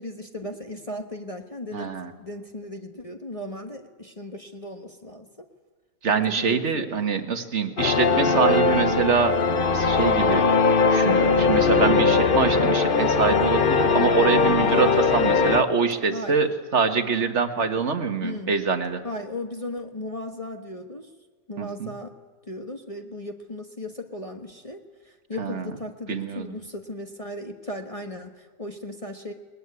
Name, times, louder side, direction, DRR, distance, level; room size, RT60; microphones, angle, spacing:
voice 1, 0.0-1.9 2.2-5.5 6.1-6.9 16.1-16.4 17.6-17.7 18.2-18.5 19.0-21.1 21.5-22.2 22.5-24.8 25.0-29.3, left 1 dB, 25° left, 3 dB, 1.2 m, -36 dB
voice 2, 1.7-2.1 6.0-9.3 9.7-10.5 10.9-19.0 21.6-21.9 25.4-25.7 26.1-26.5, right 5 dB, 45° right, 7 dB, 1.8 m, -25 dB
sound 1, 7.8-15.6, left 4 dB, 40° left, 0.9 m, -20 dB
21.0 x 20.5 x 9.6 m, 1.4 s
omnidirectional pair, 1.7 m